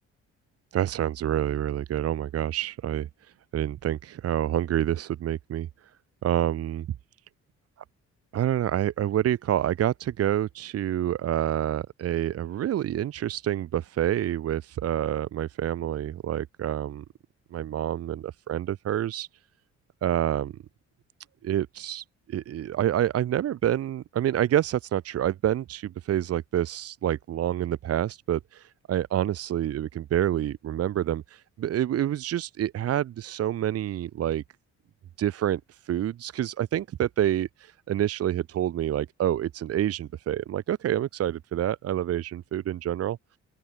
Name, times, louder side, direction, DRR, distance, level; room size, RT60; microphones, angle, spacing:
voice 1, 0.7-5.9 6.2-6.9 8.3-17.0 17.5-19.3 20.0-20.5 21.4-34.4 35.2-43.2, right 11 dB, 50° right, 0.7 m, -28 dB
open air
cardioid pair, 90°, 30 cm